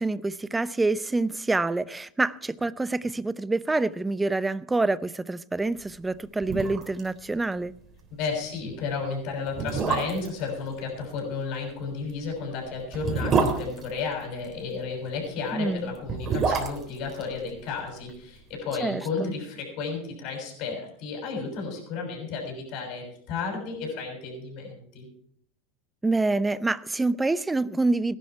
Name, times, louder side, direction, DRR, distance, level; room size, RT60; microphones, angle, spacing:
voice 1, 0.0-7.7 15.5-15.9 18.8-19.0 26.0-28.2, right 2 dB, 10° right, 0.6 m, -26 dB
sound 1, 6.0-6.1 6.4-7.1 7.3-7.4 7.8-8.0 8.7-8.8 9.5-10.4 11.9-14.6 15.9-18.1 18.4-18.5, right 5 dB, 35° right, 3.3 m, -28 dB
voice 2, 8.2-25.1, left 4 dB, 55° left, 6.4 m, -33 dB
17.5 x 11.5 x 4.7 m
hypercardioid pair, 95°, 0 cm